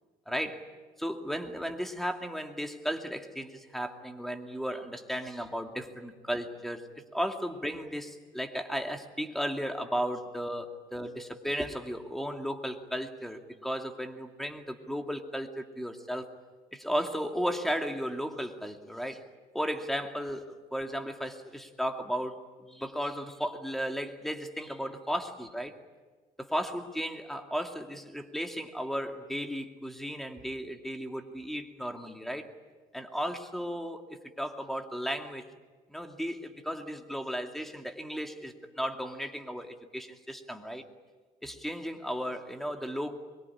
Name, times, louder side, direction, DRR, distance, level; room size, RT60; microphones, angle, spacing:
voice 1, 0.3-0.7 1.0-6.9 7.1-16.3 16.7-19.2 19.5-25.7 26.4-32.5 32.9-35.4 35.9-40.8 41.4-43.2, equal, ahead, 4 dB, 2.6 m, -35 dB
24.5 x 23.0 x 10.0 m, 1.3 s
cardioid pair, 110°, 17 cm